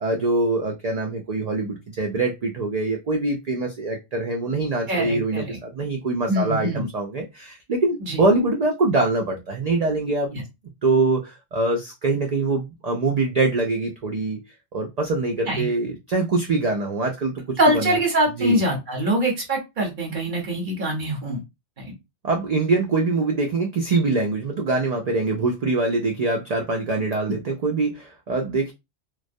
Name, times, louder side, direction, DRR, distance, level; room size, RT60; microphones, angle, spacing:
voice 1, 0.0-10.4 10.8-14.4 14.7-18.0 18.4-18.6 22.2-28.7, right 3 dB, 65° right, 0.4 m, -24 dB
voice 2, 4.9-5.6 6.3-6.9 8.0-8.2 10.3-10.4 15.5-15.7 17.6-21.4 21.8-21.9, right 1 dB, 50° right, 0.9 m, -23 dB
2.2 x 2.1 x 2.6 m
omnidirectional pair, 1.2 m